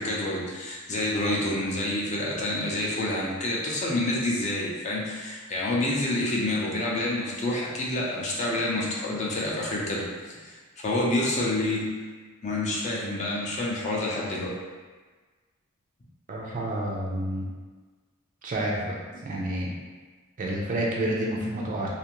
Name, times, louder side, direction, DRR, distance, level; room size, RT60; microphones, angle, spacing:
voice 1, 0.0-10.6 10.8-11.9 12.4-14.5, left 1 dB, 30° left, -4 dB, 0.5 m, -28 dB
voice 2, 16.3-17.4 18.4-19.7 20.4-21.9, right 1 dB, 35° right, -3 dB, 0.4 m, -29 dB
2.5 x 2.4 x 2.9 m, 1.4 s
head